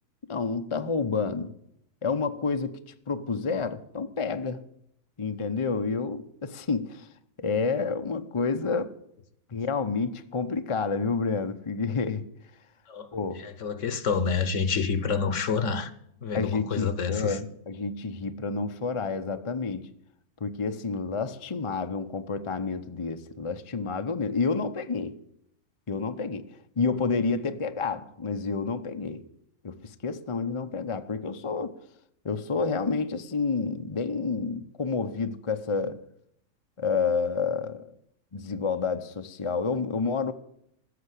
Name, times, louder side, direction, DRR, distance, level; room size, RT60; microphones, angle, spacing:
voice 1, 0.3-1.5 2.0-2.8 3.1-4.7 5.2-7.1 7.4-8.9 9.5-12.3 13.1-13.5 16.3-19.9 20.4-25.2 25.9-29.3 29.6-31.8 32.2-36.0 36.8-38.0 38.3-40.3, left 4 dB, 30° left, 0.6 m, -29 dB
voice 2, 13.4-15.9 16.2-17.4, left 5 dB, 60° left, 1.3 m, -28 dB
14.5 x 6.8 x 8.3 m
omnidirectional pair, 1.6 m